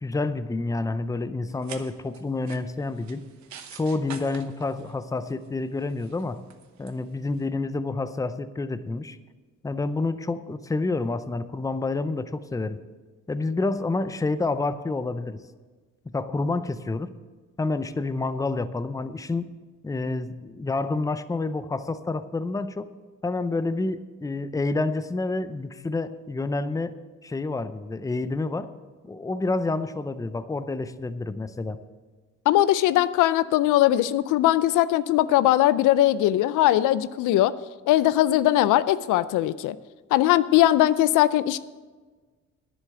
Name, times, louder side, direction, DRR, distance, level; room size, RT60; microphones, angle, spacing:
voice 1, 0.0-3.2 3.7-6.4 6.8-9.2 9.6-12.8 13.3-15.4 16.1-17.1 17.6-19.5 19.8-22.9 23.2-26.9 27.2-28.7 29.0-31.8, left 3 dB, 10° left, 13 dB, 0.5 m, -28 dB
sound 1, 1.5-7.5, right 8 dB, 70° right, 1.1 m, -47 dB
voice 2, 32.5-37.5 37.9-39.8 40.1-41.6, left 14 dB, 85° left, 16 dB, 0.5 m, -20 dB
10.0 x 7.2 x 7.7 m, 1.4 s
cardioid pair, 90°, 30 cm